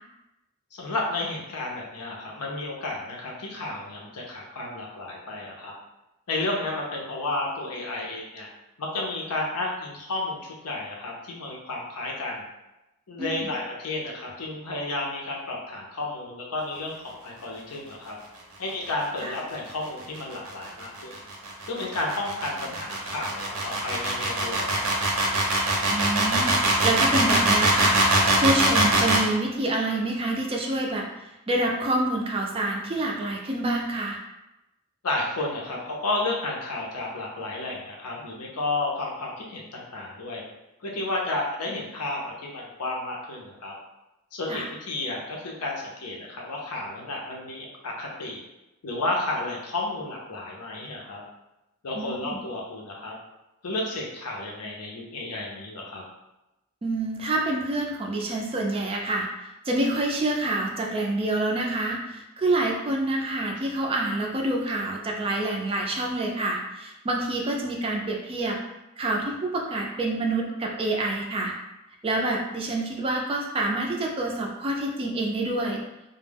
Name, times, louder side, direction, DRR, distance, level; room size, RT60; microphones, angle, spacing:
voice 1, 0.7-5.7 6.3-8.5 8.8-12.4 13.1-18.2 18.6-21.1 21.7-25.2 35.0-40.4 40.8-43.7 44.3-48.4 48.8-51.2 51.8-53.2 53.6-56.0, left 2 dB, 85° left, -1 dB, 0.6 m, -32 dB
sound 1, 20.0-29.3, right 2 dB, 80° right, 0.6 m, -23 dB
voice 2, 25.9-28.0 28.4-31.1 31.5-34.2 44.5-44.7 51.9-52.4 56.8-59.3 59.6-68.6 69.0-71.5 72.0-75.8, right 2 dB, 25° right, 0 dB, 0.3 m, -27 dB
2.2 x 2.1 x 3.3 m, 0.95 s
head